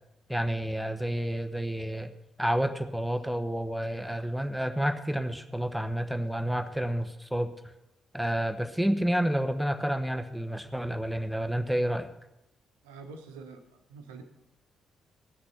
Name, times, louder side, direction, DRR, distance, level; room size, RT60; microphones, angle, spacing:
voice 1, 0.3-2.1 2.4-7.5 8.1-12.1, equal, ahead, 8 dB, 1.1 m, -29 dB
voice 2, 12.8-13.6 13.9-14.2, right 4 dB, 75° right, 6 dB, 1.0 m, -45 dB
16.5 x 6.6 x 5.6 m, 0.92 s
figure-of-eight pair, 40°, 0 cm